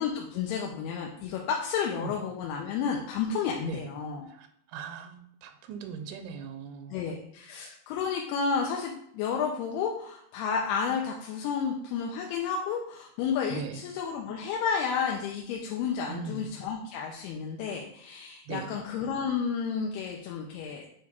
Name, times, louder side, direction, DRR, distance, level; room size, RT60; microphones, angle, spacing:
voice 1, 0.0-4.3 6.9-20.9, left 6 dB, 85° left, 0 dB, 2.7 m, -31 dB
voice 2, 4.3-7.2 13.5-13.8 16.1-16.5 18.5-18.8, right 6 dB, 85° right, 6 dB, 2.6 m, -40 dB
8.6 x 3.5 x 4.2 m, 0.70 s
omnidirectional pair, 4.6 m